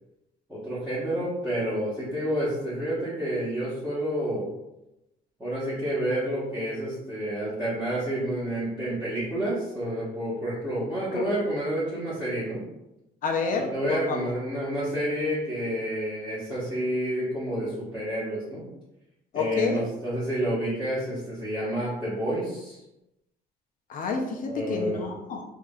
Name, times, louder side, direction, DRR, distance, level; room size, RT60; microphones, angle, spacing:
voice 1, 0.5-4.5 5.4-12.6 13.5-18.6 19.3-22.8 24.5-25.0, right 1 dB, 10° right, -12 dB, 1.5 m, -29 dB
voice 2, 13.2-14.2 19.3-19.8 23.9-25.4, left 5 dB, 55° left, 3 dB, 0.7 m, -29 dB
4.7 x 2.8 x 2.4 m, 0.92 s
cardioid pair, 110°, 17 cm